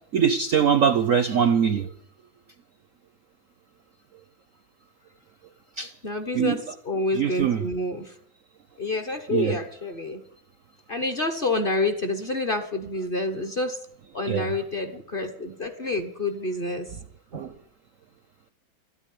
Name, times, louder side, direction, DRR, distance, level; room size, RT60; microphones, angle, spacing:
voice 1, 0.1-1.9 5.8-5.9 6.3-6.6 7.1-7.7 9.3-9.6 14.3-14.5 17.3-17.5, right 7 dB, 65° right, 11 dB, 0.8 m, -22 dB
voice 2, 6.0-6.6 6.8-8.1 8.8-10.2 10.9-13.8 14.1-16.9, left 2 dB, 35° left, 8 dB, 0.9 m, -28 dB
13.0 x 9.9 x 9.9 m, 0.69 s
omnidirectional pair, 2.2 m